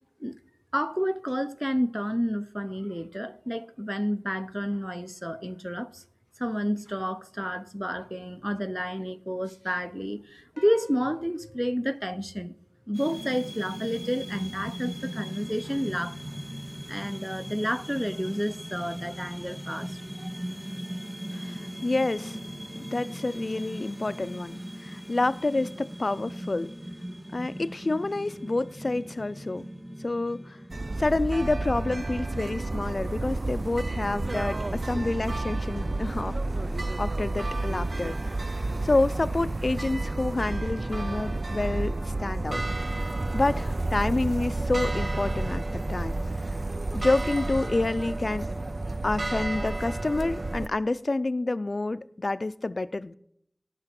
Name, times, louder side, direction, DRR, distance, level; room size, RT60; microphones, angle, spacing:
voice 1, 0.7-6.0 6.4-12.5 12.9-16.2 16.9-20.3, equal, 5° right, 0.5 m, -30 dB
sound 1, 10.6-13.1, equal, 10° left, 1.4 m, -53 dB
sound 2, 12.9-32.2, equal, 45° right, 3.5 m, -39 dB
voice 2, 21.3-22.4 22.8-26.7 27.3-29.7 30.0-30.6 31.0-36.4 37.0-42.6 43.3-46.2 46.9-48.5 49.0-53.2, left 2 dB, 80° left, 0.4 m, -28 dB
sound 3, 30.7-50.7, right 2 dB, 70° right, 0.3 m, -30 dB
17.5 x 6.1 x 5.9 m
wide cardioid pair, 45°, 0 cm